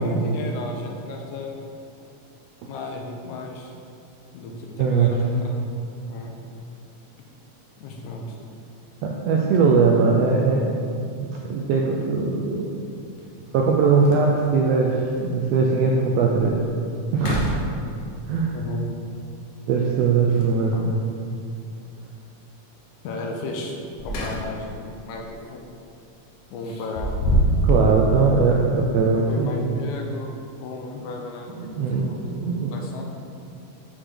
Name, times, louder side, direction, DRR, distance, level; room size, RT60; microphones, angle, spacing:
voice 1, 0.0-1.6 2.6-3.7 4.3-5.6 6.1-6.4 7.8-8.4 18.5-18.8 23.0-23.7 24.0-25.6 26.5-27.1 29.2-30.3 30.6-32.4 32.7-33.0, left 2 dB, 80° left, 1 dB, 2.1 m, -34 dB
voice 2, 4.8-5.1 9.0-10.6 11.1-12.8 13.5-16.6 17.1-17.6 18.3-18.5 19.7-21.0 27.6-29.7 31.6-32.7, right 4 dB, 80° right, -1 dB, 1.4 m, -20 dB
sound 1, 13.2-13.3 13.7-13.8 14.0-14.6 15.2-15.3 15.8-15.9 16.3-16.7 17.1-18.2 20.3-20.9 23.7-24.8 25.1-25.4 26.6-28.0, right 1 dB, 65° left, 1.6 m, -25 dB
6.4 x 4.9 x 3.7 m, 2.5 s
omnidirectional pair, 3.3 m